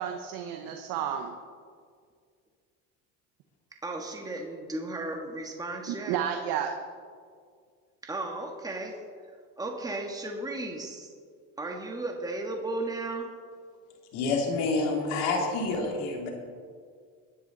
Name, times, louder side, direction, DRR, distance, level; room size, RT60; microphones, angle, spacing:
voice 1, 0.0-1.4 5.9-6.7, right 9 dB, 70° right, 4 dB, 1.2 m, -31 dB
voice 2, 3.8-6.2 8.0-9.0 9.6-11.1 11.6-13.3, right 2 dB, 10° right, 2 dB, 1.7 m, -35 dB
voice 3, 14.1-16.3, left 3 dB, 80° left, 1 dB, 2.9 m, -28 dB
18.5 x 10.5 x 4.0 m, 2.1 s
supercardioid pair, 100°, 35 cm